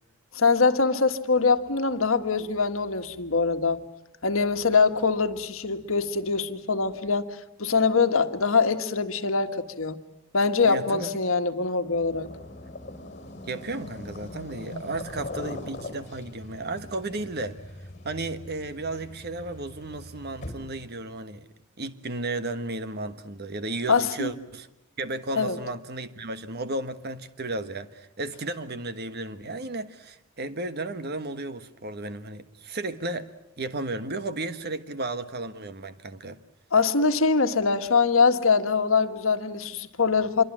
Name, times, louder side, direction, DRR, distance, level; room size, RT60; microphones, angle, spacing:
voice 1, 0.3-3.8 4.2-10.0 10.3-12.3 23.9-24.3 25.4-25.6 36.7-40.4, left 4 dB, 70° left, 1.6 m, -23 dB
voice 2, 10.6-11.2 13.5-17.6 18.0-21.5 21.8-24.7 25.0-33.3 33.6-36.4, right 2 dB, 50° right, 1.4 m, -34 dB
sound 1, 11.8-20.9, left 1 dB, 35° left, 4.9 m, -41 dB
26.5 x 23.5 x 7.4 m
head